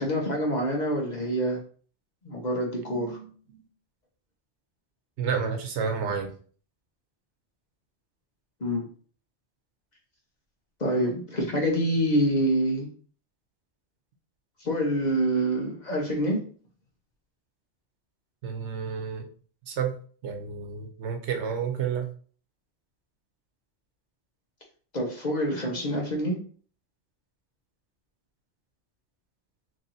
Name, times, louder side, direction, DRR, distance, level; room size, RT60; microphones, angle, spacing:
voice 1, 0.0-1.6 2.2-3.2 8.6-8.9 10.8-12.9 14.6-16.4 24.9-26.4, equal, 40° left, 0 dB, 1.0 m, -26 dB
voice 2, 2.8-3.6 5.2-6.3 18.4-19.2 19.7-19.9 20.2-22.1, right 6 dB, 80° right, 5 dB, 1.0 m, -31 dB
3.0 x 2.9 x 3.9 m, 0.43 s
omnidirectional pair, 1.2 m